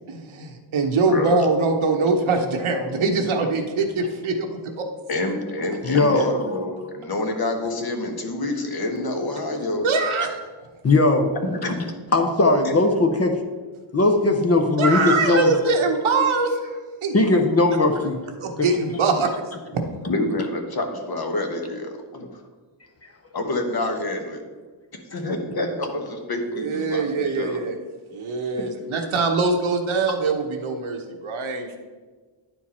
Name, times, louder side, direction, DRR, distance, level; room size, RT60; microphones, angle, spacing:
voice 1, 0.1-4.8 9.8-10.4 14.8-17.2 18.4-19.3 19.7-19.8 26.5-27.7 28.1-31.8, right 3 dB, 75° right, 4 dB, 1.0 m, -23 dB
voice 2, 1.1-1.4 5.1-9.9 11.5-11.7 12.6-12.7 20.1-22.3 23.3-24.4 24.9-27.6 28.6-28.7, left 2 dB, 50° left, 4 dB, 1.0 m, -27 dB
voice 3, 5.8-6.2 10.8-11.3 11.7-11.8 12.1-13.3 13.9-15.5 17.1-18.2, left 2 dB, 30° left, 5 dB, 0.6 m, -18 dB
10.0 x 4.5 x 4.2 m, 1.4 s
wide cardioid pair, 165°, 49 cm